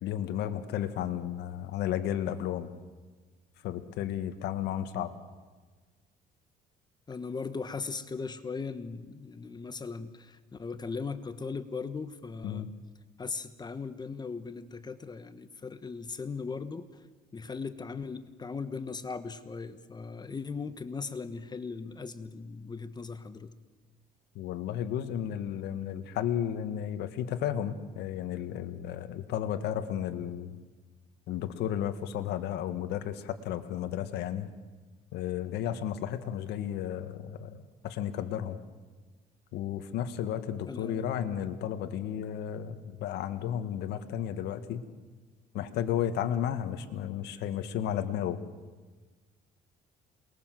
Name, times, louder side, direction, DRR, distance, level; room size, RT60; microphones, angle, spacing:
voice 1, 0.0-2.7 3.6-5.1 12.4-12.7 24.4-30.6 31.3-34.5 35.1-38.6 39.5-44.9 45.5-48.4, left 10 dB, 80° left, 9 dB, 1.8 m, -33 dB
voice 2, 7.1-12.7 13.2-17.0 17.3-23.5 40.7-41.0, left 4 dB, 25° left, 11 dB, 1.4 m, -38 dB
27.5 x 21.5 x 7.7 m, 1.4 s
cardioid pair, 110°, 17 cm